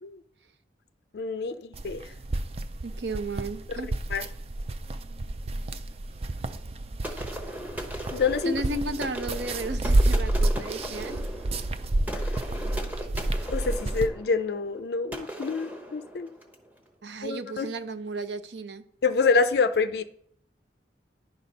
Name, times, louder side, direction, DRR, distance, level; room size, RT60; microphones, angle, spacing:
voice 1, 1.1-2.0 3.7-3.8 4.1-4.2 8.1-8.5 13.5-16.3 17.2-17.7 19.0-20.0, left 4 dB, 55° left, 0.4 m, -26 dB
sound 1, 1.7-14.1, right 1 dB, 30° right, 0.4 m, -29 dB
voice 2, 2.8-3.9 7.0-7.2 8.4-11.2 17.0-18.8, right 2 dB, 65° right, 0.6 m, -34 dB
sound 2, 7.0-16.7, right 1 dB, 10° right, 0.8 m, -38 dB
10.5 x 4.2 x 5.3 m
head